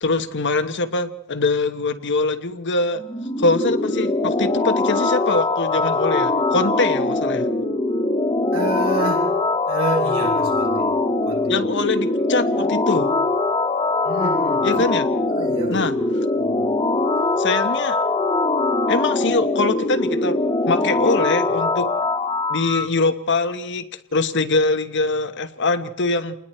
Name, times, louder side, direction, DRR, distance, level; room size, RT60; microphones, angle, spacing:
voice 1, 0.0-3.0 3.4-7.5 11.5-13.1 14.6-15.1 15.7-15.9 17.4-18.0 18.9-20.4 20.7-21.9 22.5-23.9 24.1-26.3, left 3 dB, 55° left, 10 dB, 1.1 m, -23 dB
sound 1, 3.0-22.9, left 2 dB, 25° left, 1.6 m, -22 dB
voice 2, 8.5-9.4 9.7-10.9 11.2-11.5 14.0-14.9 15.3-15.9 16.4-16.6, right 2 dB, 75° right, -1 dB, 6.7 m, -29 dB
29.0 x 20.5 x 4.4 m, 0.78 s
head